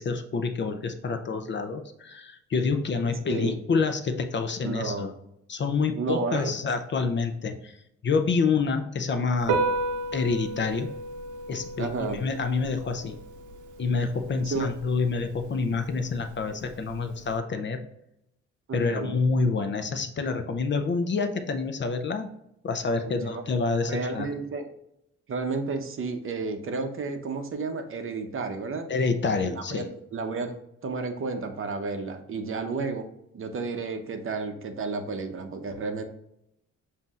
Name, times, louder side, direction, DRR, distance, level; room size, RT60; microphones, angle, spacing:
voice 1, 0.0-5.1 5.5-7.7 8.0-9.6 10.1-10.9 11.5-13.2 13.8-17.8 18.7-22.3 22.6-24.3 28.9-29.9, left 4 dB, 40° left, 7 dB, 0.6 m, -27 dB
voice 2, 4.6-5.1 5.9-6.5 11.8-12.2 14.4-14.7 18.7-19.2 23.1-23.4 23.8-24.7 25.3-28.9 29.4-29.8 30.1-30.5 30.8-33.1 33.3-36.0, right 4 dB, 45° right, 7 dB, 0.8 m, -31 dB
Piano, 9.4-17.4, right 3 dB, 80° right, 0.7 m, -34 dB
7.2 x 2.8 x 2.4 m, 0.81 s
cardioid pair, 90°, 30 cm